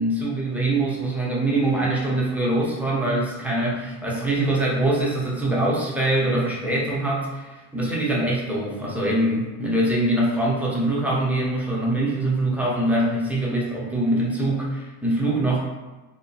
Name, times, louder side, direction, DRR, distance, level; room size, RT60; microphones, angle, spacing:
voice 1, 0.0-15.6, right 1 dB, 5° right, -6 dB, 0.6 m, -23 dB
2.8 x 2.1 x 2.7 m, 1.2 s
supercardioid pair, 100°, 44 cm